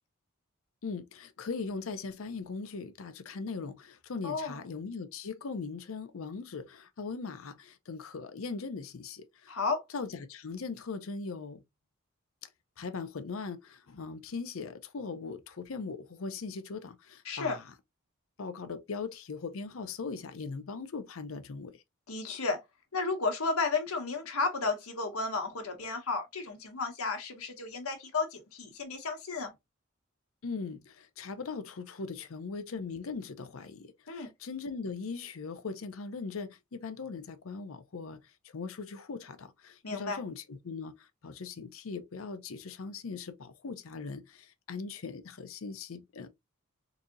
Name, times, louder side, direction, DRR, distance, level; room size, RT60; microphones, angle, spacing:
voice 1, 0.8-9.6 9.9-11.6 12.4-12.5 12.8-17.7 18.4-21.8 30.4-46.3, left 4 dB, 70° left, 0.6 m, -40 dB
voice 2, 4.2-4.6 9.5-9.8 17.3-17.6 22.1-22.6 22.9-29.5 34.1-34.3 39.8-40.2, left 4 dB, 90° left, 1.1 m, -33 dB
4.0 x 2.8 x 2.5 m
head